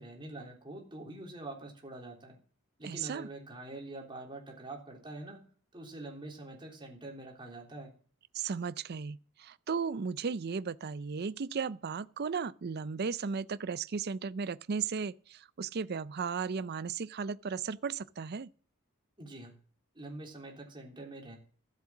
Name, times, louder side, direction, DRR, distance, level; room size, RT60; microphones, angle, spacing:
voice 1, 0.0-2.4 2.8-5.4 5.7-7.9 19.2-19.5 20.0-21.4, right 2 dB, 25° right, 3.5 m, -45 dB
voice 2, 2.8-3.3 8.3-18.5, right 5 dB, 50° right, 0.5 m, -35 dB
13.5 x 7.7 x 7.2 m
head